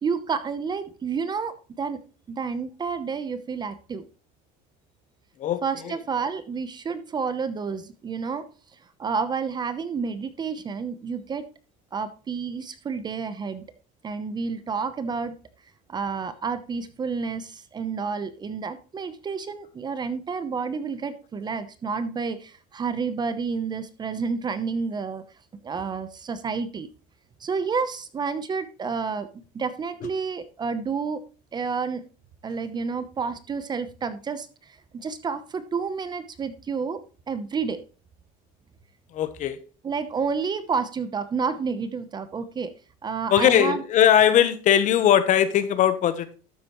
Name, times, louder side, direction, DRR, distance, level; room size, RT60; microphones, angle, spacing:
voice 1, 0.0-2.0 2.3-4.1 5.6-8.4 9.0-11.5 11.9-13.6 14.0-15.3 15.9-25.2 25.6-26.9 27.4-31.2 31.5-32.0 32.4-37.0 37.3-37.8 39.8-42.7 43.0-43.8, right 5 dB, 25° right, 0.8 m, -30 dB
voice 2, 5.4-6.0 39.1-39.6 43.3-46.3, left 10 dB, 45° left, 1.1 m, -20 dB
12.0 x 8.1 x 3.1 m
cardioid pair, 135°, 19 cm